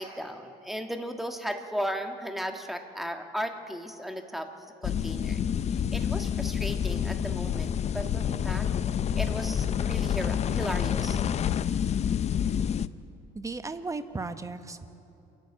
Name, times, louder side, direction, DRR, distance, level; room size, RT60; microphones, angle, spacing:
voice 1, 0.0-4.5 4.8-5.4 5.7-8.7 9.2-11.2, equal, ahead, 5 dB, 1.5 m, -36 dB
sound 1, 4.8-12.9, left 8 dB, 40° left, 0.5 m, -28 dB
voice 2, 13.3-14.9, right 3 dB, 20° right, 10 dB, 1.0 m, -35 dB
28.0 x 11.5 x 8.7 m, 2.9 s
cardioid pair, 110°, 17 cm